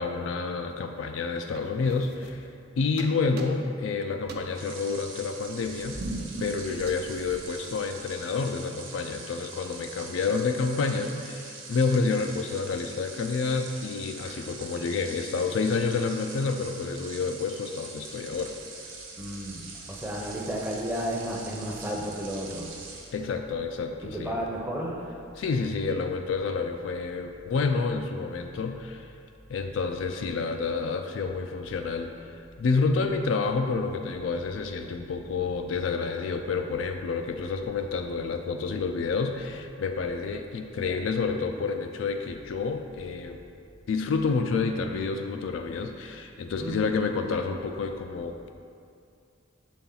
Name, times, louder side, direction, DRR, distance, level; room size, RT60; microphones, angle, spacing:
voice 1, 0.0-2.5 2.8-6.0 6.4-18.5 23.1-24.3 25.4-29.1 29.5-43.4 43.9-48.5, left 4 dB, 75° left, 5 dB, 0.3 m, -29 dB
sound 1, 1.5-2.7 3.0-3.9 4.2-8.0, right 2 dB, 55° right, 0.5 m, -40 dB
sound 2, 4.5-23.1, right 4 dB, 85° right, 1.0 m, -43 dB
voice 2, 19.2-22.8 24.0-25.3 46.5-46.8, equal, 10° right, -2 dB, 0.6 m, -33 dB
6.9 x 4.2 x 3.8 m, 2.4 s
head